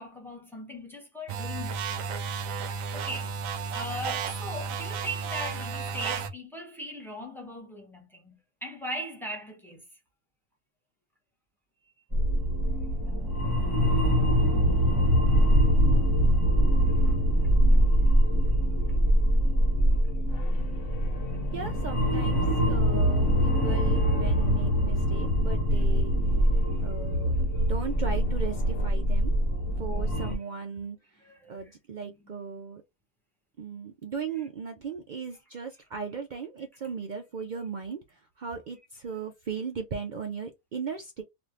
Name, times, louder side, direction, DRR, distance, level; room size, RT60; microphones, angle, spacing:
voice 1, 0.0-2.1 2.5-3.4 3.7-9.9 16.8-17.2 17.4-17.8 18.8-19.0 21.2-21.4 26.5-26.9 27.5-27.6 30.2-30.3 31.2-31.7 34.4-34.5, equal, ahead, 0.8 m, -40 dB
sound 1, 1.3-6.3, right 5 dB, 85° right, 1.0 m, -33 dB
sound 2, 12.1-30.3, equal, 15° right, 1.1 m, -23 dB
sound 3, 20.3-25.7 27.9-28.9, left 7 dB, 75° left, 0.9 m, -41 dB
voice 2, 21.5-26.1 26.8-27.3 27.6-29.3 29.8-31.2 31.5-32.8 33.6-41.2, right 5 dB, 65° right, 0.4 m, -37 dB
3.2 x 2.5 x 2.5 m
omnidirectional pair, 1.4 m